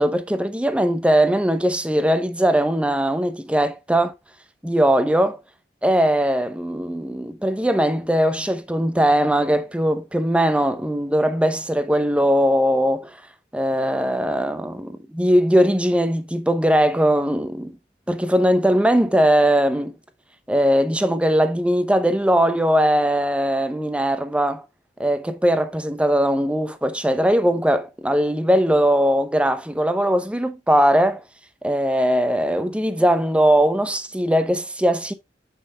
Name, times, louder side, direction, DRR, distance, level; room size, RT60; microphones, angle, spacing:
voice 1, 0.0-4.1 4.6-5.4 5.8-13.2 13.5-17.7 18.1-19.9 20.5-24.6 25.0-31.2 31.6-35.1, equal, 5° right, 0.7 m, -20 dB
8.8 x 5.5 x 2.4 m
head